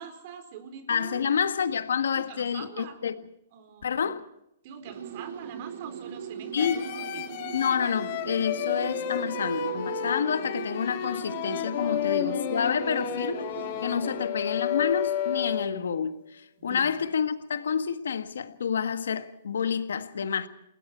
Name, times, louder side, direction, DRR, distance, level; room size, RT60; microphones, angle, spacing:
voice 1, 0.0-1.3 2.1-3.0 3.5-4.1 4.6-7.4 11.8-12.0 16.6-16.9, right 7 dB, 45° right, 4.6 m, -44 dB
voice 2, 0.9-3.2 3.8-4.2 6.5-6.9 7.5-13.5 13.8-20.5, left 7 dB, 85° left, 1.6 m, -28 dB
sound 1, 4.8-14.2, right 8 dB, 65° right, 1.9 m, -39 dB
sound 2, 6.6-15.9, left 9 dB, 50° left, 2.0 m, -32 dB
29.0 x 20.5 x 4.5 m
hypercardioid pair, 145°, 0 cm